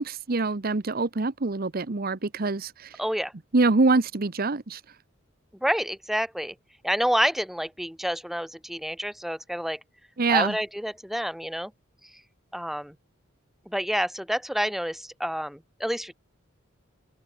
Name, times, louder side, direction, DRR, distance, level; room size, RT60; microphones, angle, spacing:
voice 1, 0.0-2.7 3.5-4.8 10.2-10.5, right 3 dB, 45° right, 0.9 m, -24 dB
voice 2, 3.0-3.3 5.6-6.5 6.8-9.8 10.3-11.7 12.5-12.9 13.7-16.1, equal, ahead, 1.4 m, -28 dB
open air
head